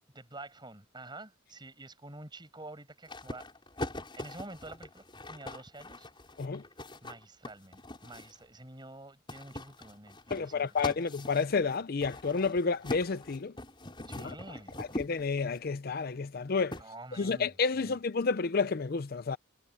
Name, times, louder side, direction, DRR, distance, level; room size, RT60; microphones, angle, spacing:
voice 1, 0.1-3.5 4.2-6.1 7.0-11.0 14.1-14.8 16.8-17.5 17.8-18.0, right 2 dB, 20° right, 5.8 m, -48 dB
sound 1, 3.1-8.4 9.3-15.6 16.7-16.8, left 1 dB, 25° left, 6.0 m, -42 dB
voice 2, 10.3-13.5 14.2-14.3 14.8-16.8 17.1-19.4, left 4 dB, 50° left, 0.5 m, -30 dB
head